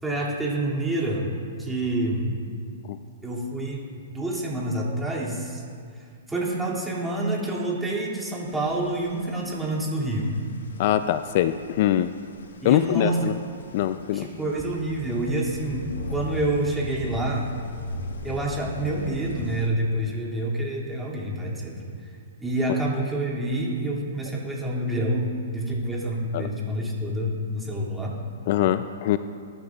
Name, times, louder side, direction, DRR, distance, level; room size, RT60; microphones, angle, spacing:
voice 1, 0.0-1.3 1.6-2.4 3.2-5.6 6.0-10.3 12.6-13.3 14.1-17.5 18.2-22.1 22.4-25.3 25.5-28.1, right 1 dB, 5° right, -4 dB, 2.5 m, -28 dB
sound 1, 8.5-19.7, left 2 dB, 85° left, 1.4 m, -39 dB
voice 2, 10.8-12.1 12.6-13.4 13.7-14.3 26.3-26.5 28.5-29.2, left 12 dB, 50° left, 12 dB, 0.4 m, -23 dB
22.0 x 11.5 x 2.4 m, 2.3 s
hypercardioid pair, 135°, 0 cm